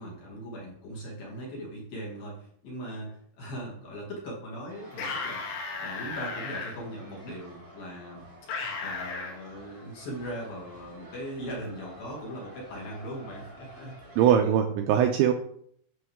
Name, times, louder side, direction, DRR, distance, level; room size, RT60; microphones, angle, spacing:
voice 1, 0.0-5.4 5.8-8.3 8.8-14.0 14.4-14.5, equal, 55° left, -3 dB, 3.3 m, -39 dB
sound 1, 4.7-14.3, right 1 dB, 20° right, 1.3 m, -50 dB
sound 2, 4.9-6.7 8.5-9.3, left 4 dB, 80° left, 4.4 m, -34 dB
voice 2, 14.2-15.3, right 9 dB, 85° right, 5 dB, 2.6 m, -21 dB
11.5 x 6.4 x 3.6 m, 0.66 s
omnidirectional pair, 5.8 m